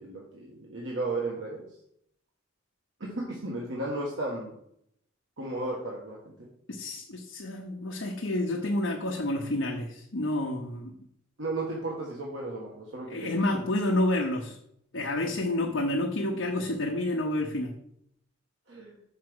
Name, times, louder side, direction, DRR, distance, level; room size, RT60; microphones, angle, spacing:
voice 1, 0.0-1.7 3.1-4.5 5.4-6.5 11.4-13.6 18.7-18.9, right 2 dB, 75° right, -3 dB, 1.4 m, -34 dB
voice 2, 6.7-10.9 13.1-14.6 14.9-17.7, left 1 dB, 75° left, 1 dB, 0.9 m, -29 dB
5.8 x 4.8 x 6.2 m, 0.72 s
head